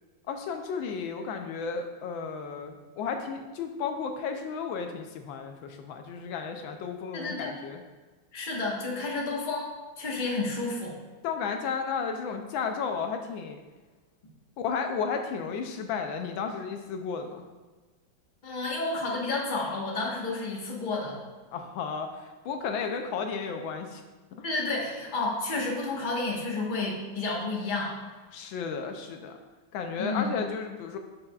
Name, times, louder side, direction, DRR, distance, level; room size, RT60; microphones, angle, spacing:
voice 1, 0.3-7.8 11.2-13.6 14.6-17.5 21.5-24.0 24.3-24.4 28.3-29.4 29.7-31.0, left 5 dB, 80° left, 5 dB, 1.4 m, -33 dB
voice 2, 7.1-7.5 8.3-9.7 10.0-11.0 18.4-21.2 24.4-28.0 30.0-30.3, left 3 dB, 30° left, -2 dB, 1.2 m, -31 dB
11.5 x 5.6 x 2.4 m, 1.3 s
omnidirectional pair, 2.1 m